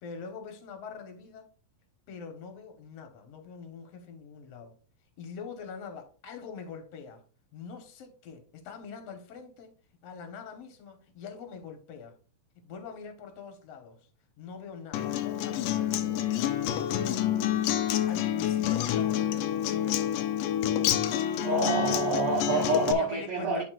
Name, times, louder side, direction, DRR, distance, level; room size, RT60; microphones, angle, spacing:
voice 1, 0.0-1.5 2.1-4.8 5.2-7.2 7.5-9.7 10.0-12.2 12.6-14.1 14.4-17.3 18.1-20.3 22.5-23.6, left 5 dB, 55° left, 2.0 m, -44 dB
Acoustic guitar, 14.9-22.9, left 10 dB, 80° left, 2.0 m, -28 dB
voice 2, 21.4-23.6, right 2 dB, 55° right, 1.7 m, -27 dB
12.5 x 4.3 x 2.5 m
omnidirectional pair, 4.2 m